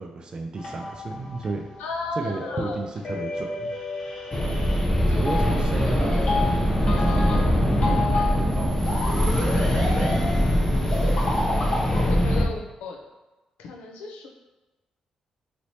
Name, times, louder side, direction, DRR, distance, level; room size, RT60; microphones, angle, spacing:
voice 1, 0.0-1.7 2.2-3.7 4.4-4.6 5.1-9.4 10.0-10.1, right 3 dB, 40° right, 3 dB, 0.4 m, -33 dB
sound 1, 0.6-11.8, left 2 dB, 60° left, 1.2 m, -31 dB
voice 2, 1.8-2.8 10.5-10.6 11.9-13.0 13.6-14.3, left 3 dB, 90° left, 1 dB, 0.5 m, -34 dB
sound 2, 4.3-12.5, equal, 20° left, 0.5 m, -22 dB
3.1 x 2.9 x 2.7 m, 1.1 s
cardioid pair, 70°, 2 cm